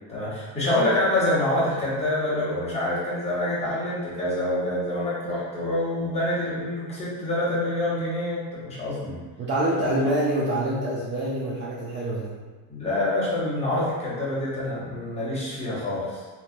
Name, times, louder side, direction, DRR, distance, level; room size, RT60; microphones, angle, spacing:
voice 1, 0.1-9.2 9.8-10.0 12.7-16.2, left 1 dB, 15° left, -9 dB, 0.9 m, -26 dB
voice 2, 9.4-12.3, right 1 dB, 30° right, -7 dB, 0.4 m, -26 dB
3.3 x 2.7 x 2.4 m, 1.4 s
cardioid pair, 160°, 37 cm